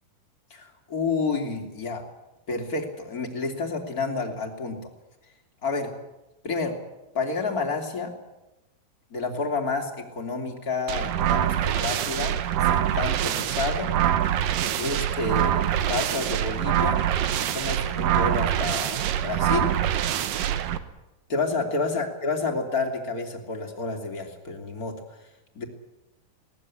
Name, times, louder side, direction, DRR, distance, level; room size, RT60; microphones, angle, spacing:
voice 1, 0.5-2.0 2.5-4.8 5.6-5.9 6.4-6.8 7.1-8.1 9.1-12.4 12.7-13.9 14.8-17.0 17.4-19.7 21.3-24.9 25.5-25.6, left 3 dB, 25° left, 3 dB, 3.2 m, -29 dB
sound 1, 10.9-20.8, right 10 dB, 80° right, 2.7 m, -25 dB
21.5 x 18.5 x 10.0 m, 0.99 s
omnidirectional pair, 4.0 m